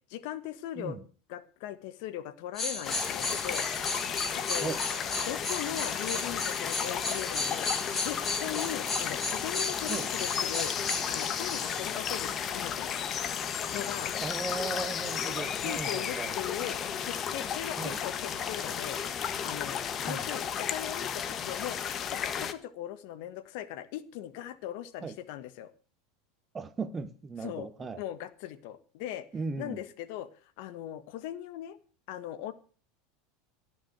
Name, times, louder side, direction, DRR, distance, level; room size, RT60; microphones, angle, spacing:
voice 1, 0.1-1.0 1.3-3.7 4.3-4.7 5.2-7.7 8.0-10.7 11.1-13.0 13.7-14.1 15.6-19.0 19.4-21.8 22.1-25.7 27.4-29.3 29.6-30.3 30.6-31.8 32.1-32.5, left 12 dB, 65° left, 1.5 m, -39 dB
sound 1, 2.5-12.1 12.7-12.8, left 2 dB, 20° left, 5.9 m, -35 dB
sound 2, 2.8-22.5, left 8 dB, 35° left, 1.3 m, -33 dB
voice 2, 14.2-16.4 17.8-18.0 20.1-20.2 25.0-25.2 26.5-28.0 29.3-29.8, right 4 dB, 20° right, 1.2 m, -37 dB
17.0 x 6.3 x 8.1 m
supercardioid pair, 115°, 0 cm